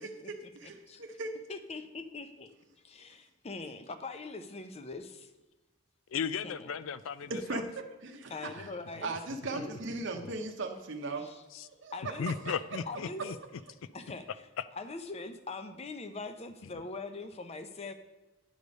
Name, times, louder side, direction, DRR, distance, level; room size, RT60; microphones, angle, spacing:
voice 1, 0.0-1.3 7.3-8.7 9.0-11.2 11.6-12.1 12.5-12.6, right 2 dB, 65° right, 3 dB, 0.8 m, -38 dB
voice 2, 0.6-1.0 1.5-2.5 2.8-5.3 6.4-6.7 8.3-9.1 9.5-9.8 10.2-10.3 11.2-11.4 11.9-12.3 12.9-13.3 13.9-14.3 14.7-17.9, left 3 dB, 30° left, 9 dB, 0.6 m, -42 dB
voice 3, 6.1-7.6 8.6-8.7 9.6-9.7 10.1-10.3 11.5-11.7 12.2-13.4 14.6-14.7, left 6 dB, 85° left, 15 dB, 0.4 m, -36 dB
9.5 x 5.0 x 5.2 m, 1.1 s
head